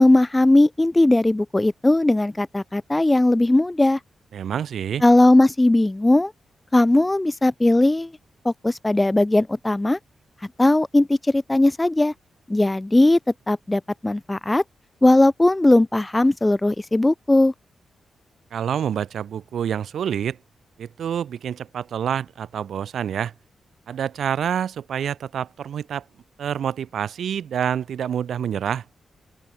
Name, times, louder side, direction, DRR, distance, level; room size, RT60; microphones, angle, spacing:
voice 1, 0.0-4.0 5.0-6.3 6.7-8.1 8.4-10.0 10.6-12.1 12.5-13.2 13.5-14.6 15.0-17.5, left 2 dB, 15° left, 1.7 m, -18 dB
voice 2, 4.3-5.0 18.5-20.4 20.8-23.3 23.9-26.0 26.4-28.8, right 8 dB, 80° right, 3.8 m, -27 dB
open air
wide cardioid pair, 120°, 0 cm